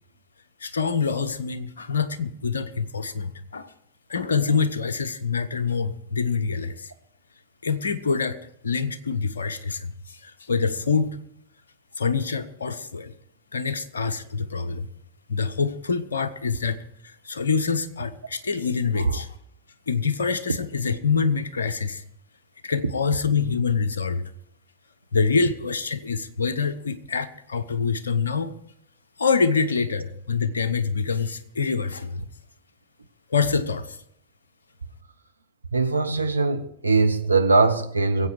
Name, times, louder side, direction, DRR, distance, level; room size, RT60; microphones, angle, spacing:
voice 1, 0.6-3.7 4.1-6.9 7.6-8.4 8.6-11.2 12.0-13.1 13.5-14.9 15.3-19.3 19.9-22.0 22.6-24.3 25.1-28.5 29.2-32.2 33.3-34.0, left 5 dB, 70° left, 0.8 m, -25 dB
voice 2, 35.7-38.3, right 3 dB, 80° right, 1.0 m, -21 dB
22.5 x 8.1 x 4.7 m
figure-of-eight pair, 90°, 0 cm